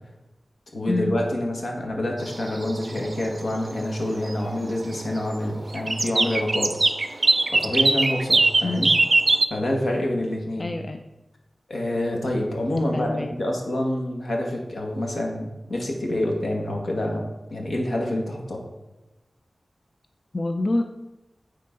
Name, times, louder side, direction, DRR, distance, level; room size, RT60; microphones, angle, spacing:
voice 1, 0.7-6.8 7.5-8.9 9.5-10.7 11.7-18.6, left 1 dB, 80° left, 0 dB, 1.3 m, -27 dB
sound 1, 2.2-3.4 3.7-4.0 4.3-5.1 5.5-9.5, right 3 dB, 50° right, 0.4 m, -21 dB
voice 2, 8.6-9.0 10.6-11.0 12.9-13.3 20.3-20.8, left 2 dB, 40° left, 5 dB, 0.4 m, -26 dB
9.5 x 3.8 x 3.7 m, 1.0 s
wide cardioid pair, 75°, 0 cm